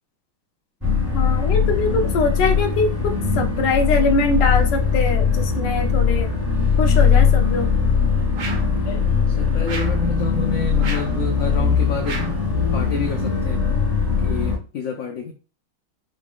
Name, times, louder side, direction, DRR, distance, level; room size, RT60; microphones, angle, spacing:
sound 1, 0.8-14.6, left 6 dB, ahead, 2.2 m, -20 dB
voice 1, 1.1-6.3 6.8-7.7 8.9-9.0, left 3 dB, 65° left, 1.3 m, -23 dB
sound 2, 8.4-8.8 9.7-10.1 10.8-11.2 12.0-12.4, right 3 dB, 60° right, 1.5 m, -32 dB
voice 2, 9.3-12.3 12.7-13.9 14.2-15.3, left 5 dB, 90° left, 0.7 m, -29 dB
5.1 x 3.7 x 2.3 m
omnidirectional pair, 2.2 m